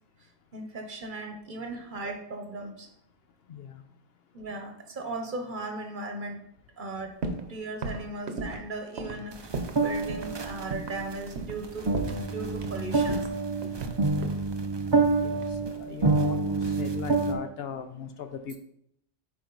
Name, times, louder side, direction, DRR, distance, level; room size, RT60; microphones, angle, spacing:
voice 1, 0.5-2.9 4.3-6.4 6.8-7.2 7.5-13.3, right 2 dB, 50° right, 5 dB, 1.0 m, -37 dB
sound 1, 7.2-7.5 7.8-9.8 10.1-10.3 10.7-11.0 11.4-11.6 11.9-12.8 13.1-14.4 15.4-16.3 16.6-17.0, right 3 dB, 70° right, 1.1 m, -36 dB
sound 2, 9.3-11.3 11.6-17.3, right 3 dB, 30° right, 0.5 m, -27 dB
voice 2, 15.9-18.6, left 7 dB, 65° left, 9 dB, 0.8 m, -39 dB
8.6 x 4.6 x 3.9 m, 0.73 s
omnidirectional pair, 1.1 m